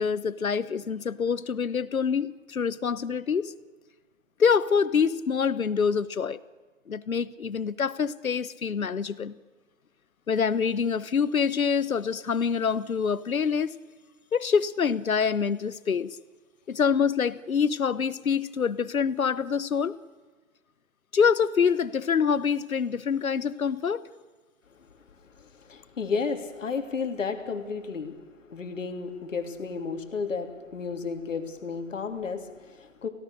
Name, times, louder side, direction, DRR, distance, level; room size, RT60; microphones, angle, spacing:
voice 1, 0.0-3.5 4.4-6.4 6.9-9.3 10.3-13.8 14.3-16.2 16.7-20.0 21.1-24.0, left 6 dB, 85° left, 17 dB, 1.1 m, -26 dB
voice 2, 25.4-28.1 28.4-33.1, left 5 dB, 65° left, 5 dB, 3.2 m, -32 dB
28.5 x 17.0 x 6.7 m, 1.3 s
hypercardioid pair, 150°, 41 cm